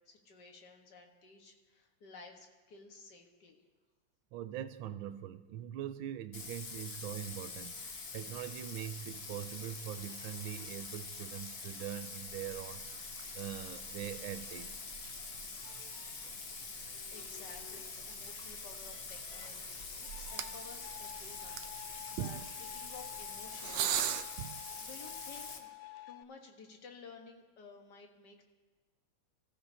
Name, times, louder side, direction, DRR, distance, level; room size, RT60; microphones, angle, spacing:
voice 1, 0.1-3.6 17.1-22.4 22.7-24.2 24.8-25.8 26.1-28.4, left 4 dB, 60° left, 3 dB, 1.9 m, -54 dB
voice 2, 4.3-13.1 13.3-14.9 15.6-16.0 22.2-22.4 24.4-24.6, right 11 dB, 90° right, 12 dB, 1.4 m, -42 dB
Bathtub (filling or washing), 6.3-25.6, left 4 dB, 40° left, 1.1 m, -45 dB
sound 1, 12.3-24.2, right 10 dB, 70° right, 1.2 m, -44 dB
sound 2, 15.9-26.2, left 13 dB, 85° left, 0.7 m, -52 dB
25.5 x 14.0 x 2.8 m, 1.3 s
omnidirectional pair, 2.1 m